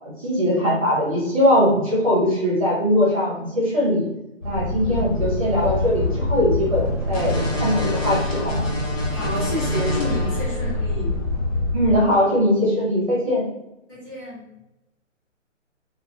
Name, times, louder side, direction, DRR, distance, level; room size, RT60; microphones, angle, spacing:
voice 1, 0.0-4.1 4.4-8.7 11.7-13.4, equal, 30° right, -5 dB, 0.5 m, -21 dB
sound 1, 4.4-12.0, left 2 dB, 75° left, 1.5 m, -24 dB
voice 2, 9.1-11.2 13.9-14.5, left 1 dB, 15° left, -8 dB, 0.9 m, -30 dB
2.3 x 2.2 x 3.2 m, 0.90 s
hypercardioid pair, 160°, 38 cm